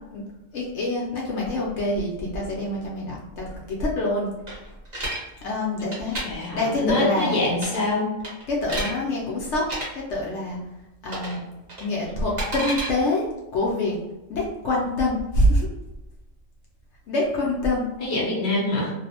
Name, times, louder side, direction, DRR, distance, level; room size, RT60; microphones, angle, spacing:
voice 1, 0.5-4.3 5.4-7.4 8.5-9.7 9.9-10.6 11.0-11.4 11.8-13.3 13.5-13.9 14.3-15.7 17.1-17.8, left 1 dB, 65° left, -3 dB, 0.8 m, -25 dB
sound 1, 4.5-5.2 5.8-6.2 7.5-7.9 8.2-8.9 9.6-9.9 11.1-11.4 11.7-12.9, right 1 dB, 35° right, 0.8 m, -30 dB
voice 2, 6.2-8.1 18.0-18.9, left 2 dB, 20° left, -5 dB, 0.5 m, -24 dB
2.5 x 2.0 x 2.7 m, 1.0 s
omnidirectional pair, 1.4 m